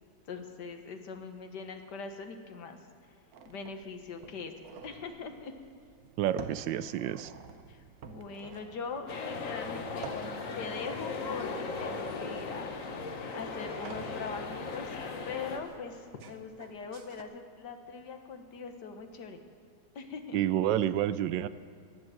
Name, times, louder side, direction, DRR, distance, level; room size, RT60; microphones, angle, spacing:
voice 1, 0.3-2.8 3.5-5.5 7.7-10.1 10.5-12.7 13.3-15.0 15.3-19.4 20.0-20.4, left 5 dB, 65° left, 6 dB, 1.8 m, -41 dB
sound 1, 3.3-17.2, right 6 dB, 60° right, 1.2 m, -50 dB
voice 2, 6.2-7.3 20.3-21.5, right 11 dB, 80° right, 15 dB, 1.3 m, -29 dB
sound 2, 9.1-15.6, left 4 dB, 50° left, 1.4 m, -38 dB
15.5 x 10.5 x 7.7 m, 2.4 s
omnidirectional pair, 2.0 m